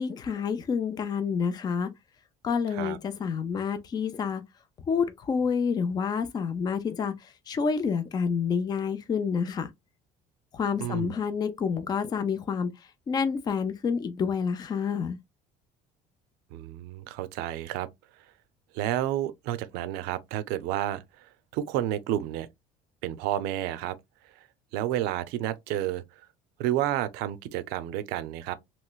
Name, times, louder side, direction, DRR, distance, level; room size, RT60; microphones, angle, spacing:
voice 1, 0.0-1.9 2.4-4.4 4.9-9.7 10.5-12.7 13.1-15.2, left 6 dB, 25° left, 0.4 m, -28 dB
voice 2, 10.8-11.1 16.5-17.9 18.7-22.5 23.0-24.0 24.7-26.0 26.6-28.5, right 12 dB, 90° right, 0.5 m, -30 dB
3.1 x 3.0 x 2.3 m
cardioid pair, 150°, 16 cm